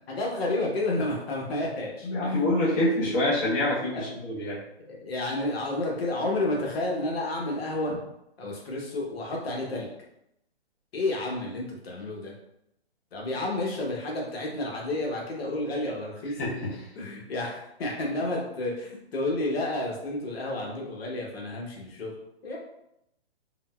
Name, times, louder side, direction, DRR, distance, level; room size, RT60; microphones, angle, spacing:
voice 1, 0.1-2.5 3.9-4.1 4.8-7.9 8.4-9.9 10.9-12.3 13.1-16.4 16.9-22.1 22.4-22.6, left 2 dB, 65° left, -2 dB, 0.9 m, -31 dB
voice 2, 2.0-4.6 16.4-16.9, left 1 dB, 20° left, -8 dB, 0.8 m, -26 dB
3.8 x 2.1 x 2.2 m, 0.81 s
hypercardioid pair, 150°, 33 cm